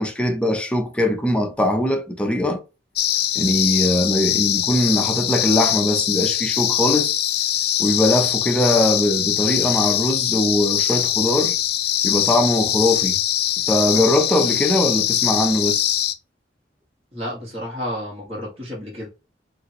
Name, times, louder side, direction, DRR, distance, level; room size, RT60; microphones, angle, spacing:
voice 1, 0.0-2.6 3.4-7.2 7.8-11.5 12.0-13.2 13.7-15.9, left 1 dB, 5° left, 0.7 m, -21 dB
sound 1, 3.0-16.1, left 11 dB, 60° left, 0.4 m, -22 dB
voice 2, 17.1-19.1, equal, 35° right, 1.9 m, -31 dB
5.3 x 2.6 x 3.0 m
head